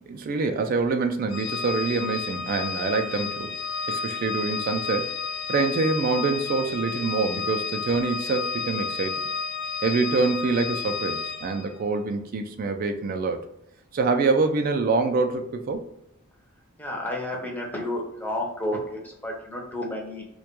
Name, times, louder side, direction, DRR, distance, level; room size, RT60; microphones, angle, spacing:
voice 1, 0.1-3.5 3.9-5.2 5.5-9.2 9.8-13.4 13.9-15.9, right 3 dB, 45° right, 6 dB, 0.3 m, -25 dB
Organ, 1.3-11.7, left 5 dB, 80° left, 0.5 m, -31 dB
voice 2, 16.8-20.3, left 1 dB, 10° left, -1 dB, 0.5 m, -31 dB
2.2 x 2.2 x 2.8 m, 0.81 s
head